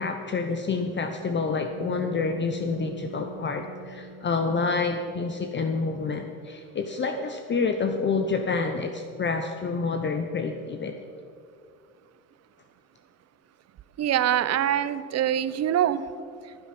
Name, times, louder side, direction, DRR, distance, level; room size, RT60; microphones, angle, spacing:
voice 1, 0.0-10.9, left 4 dB, 30° left, 6 dB, 0.8 m, -28 dB
sound 1, 1.7-5.9, right 4 dB, 70° right, 1.6 m, -43 dB
voice 2, 14.0-16.0, right 10 dB, 45° right, 14 dB, 0.7 m, -24 dB
14.5 x 8.4 x 6.0 m, 2.3 s
cardioid pair, 100°, 35 cm